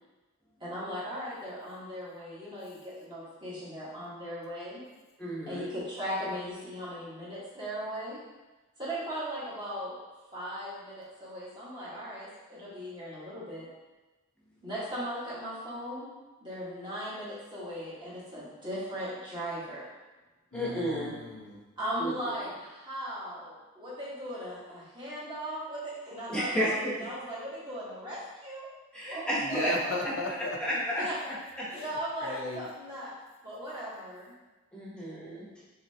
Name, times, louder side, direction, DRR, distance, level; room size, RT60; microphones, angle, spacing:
voice 1, 0.6-4.8 5.5-8.2 8.8-9.9 10.3-13.7 14.6-16.1 16.4-19.8 21.8-28.7 29.1-30.0 31.0-31.1 31.7-33.1 33.4-34.3, equal, 20° right, -9 dB, 1.5 m, -38 dB
voice 2, 5.2-5.6 20.5-21.1 22.0-22.1 26.3-27.1 28.9-29.7 30.6-31.1 31.6-31.7 32.2-32.3 34.7-35.5, equal, 5° left, -7 dB, 1.0 m, -32 dB
voice 3, 20.5-21.6 29.4-30.6 31.7-32.7, left 2 dB, 75° left, 0 dB, 0.6 m, -37 dB
5.7 x 3.2 x 2.8 m, 1.2 s
head